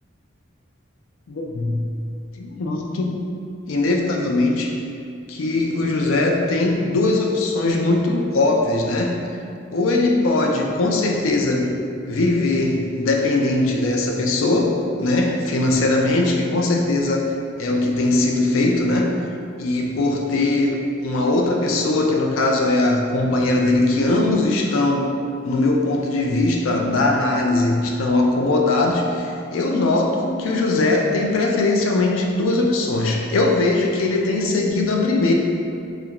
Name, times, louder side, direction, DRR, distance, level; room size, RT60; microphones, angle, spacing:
voice 1, 1.3-1.9 2.3-3.2 3.7-4.8 5.3-9.2 9.7-11.8 12.1-17.3 17.6-19.1 19.6-25.1 25.4-35.3, left 2 dB, 80° left, 1 dB, 0.4 m, -20 dB
3.3 x 2.5 x 2.9 m, 2.4 s
head